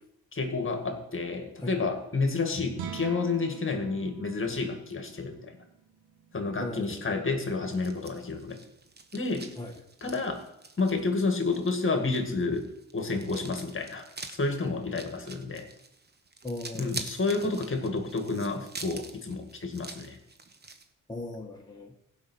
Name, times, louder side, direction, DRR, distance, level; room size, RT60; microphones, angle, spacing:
voice 1, 0.3-5.6 6.3-8.6 9.1-9.6 10.0-10.4 10.8-15.7 16.7-20.2, left 3 dB, 35° left, 5 dB, 2.1 m, -30 dB
sound 1, 2.7-9.1, right 8 dB, 85° right, 1.2 m, -46 dB
voice 2, 6.6-7.0 9.6-9.7 16.4-17.0 21.1-21.9, left 2 dB, 10° left, -1 dB, 1.7 m, -38 dB
sound 2, 7.7-20.8, right 3 dB, 30° right, 1.3 m, -45 dB
15.0 x 5.7 x 6.3 m, 0.85 s
supercardioid pair, 65°, 35 cm